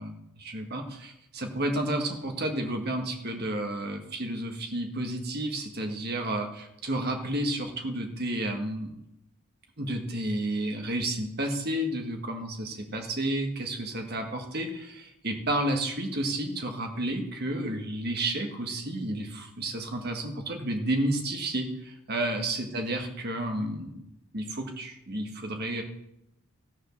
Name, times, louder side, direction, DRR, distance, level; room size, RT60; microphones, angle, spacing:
voice 1, 0.0-9.0 9.8-21.7 22.1-24.0 24.3-25.8, right 1 dB, 45° right, 3 dB, 1.7 m, -31 dB
14.5 x 6.4 x 6.5 m, 0.83 s
head